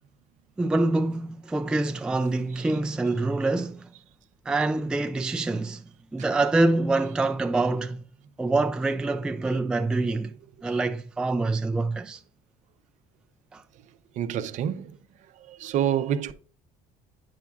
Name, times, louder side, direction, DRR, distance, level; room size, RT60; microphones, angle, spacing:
voice 1, 0.6-3.9 4.5-5.8 6.1-8.0 8.4-10.3 10.6-12.2 13.5-13.6, right 2 dB, 5° right, 0.3 m, -25 dB
voice 2, 14.2-14.9 15.5-16.3, right 9 dB, 50° right, 0.6 m, -27 dB
9.5 x 5.8 x 2.3 m
cardioid pair, 135°, 16 cm